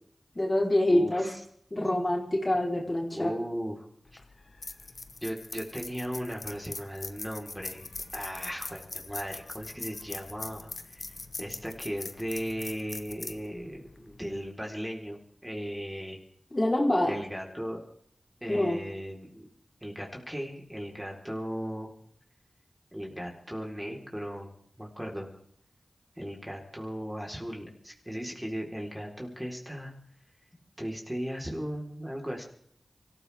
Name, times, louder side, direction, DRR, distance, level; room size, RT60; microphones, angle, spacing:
voice 1, 0.4-1.3 1.7-3.3 16.5-17.2 18.5-18.8, left 1 dB, 35° left, -1 dB, 3.9 m, -26 dB
voice 2, 0.9-1.4 3.1-3.8 4.1-4.2 5.2-7.9 8.1-11.0 11.4-16.2 17.1-17.8 18.4-19.5 19.8-21.9 22.9-24.5 24.8-25.3 26.2-29.9 30.8-32.4, equal, 10° right, 0 dB, 4.1 m, -37 dB
sound 1, 4.1-14.5, left 3 dB, 65° left, 1.1 m, -42 dB
24.5 x 15.0 x 3.6 m, 0.65 s
cardioid pair, 40°, 0 cm